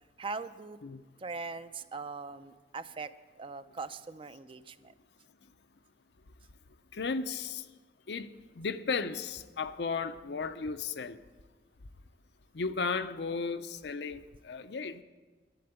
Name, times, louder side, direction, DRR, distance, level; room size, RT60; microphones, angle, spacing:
voice 1, 0.2-0.8 1.2-3.1 3.4-4.9, right 4 dB, 30° right, 12 dB, 0.4 m, -41 dB
voice 2, 6.9-7.7 8.1-11.2 12.5-15.0, left 4 dB, 75° left, 11 dB, 0.6 m, -35 dB
11.5 x 7.8 x 8.0 m, 1.4 s
head